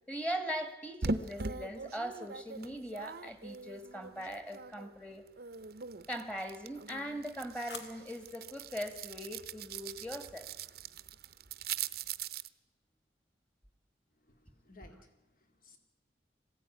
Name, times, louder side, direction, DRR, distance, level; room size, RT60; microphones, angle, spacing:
voice 1, 0.1-5.2 6.1-10.5, equal, 5° left, 9 dB, 1.9 m, -40 dB
sound 1, 1.0-4.9 5.3-12.5, right 5 dB, 60° right, 0.7 m, -42 dB
sound 2, 3.3-4.0 6.4-8.5, left 4 dB, 75° left, 2.2 m, -53 dB
voice 2, 14.1-15.8, left 2 dB, 50° left, 6 dB, 2.4 m, -59 dB
20.5 x 16.5 x 9.8 m, 1.0 s
head